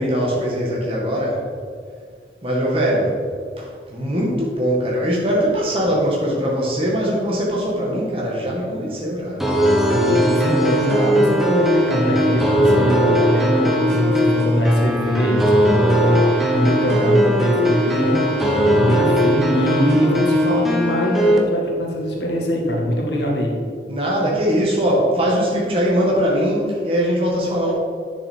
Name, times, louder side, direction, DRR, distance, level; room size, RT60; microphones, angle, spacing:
voice 1, 0.0-1.4 2.4-3.2 3.6-9.4 23.9-27.7, equal, 30° right, -4 dB, 1.9 m, -21 dB
sound 1, 9.4-21.4, equal, ahead, 0.9 m, -18 dB
voice 2, 9.9-23.6, equal, 80° left, -1 dB, 1.9 m, -22 dB
9.5 x 7.1 x 4.6 m, 2.1 s
head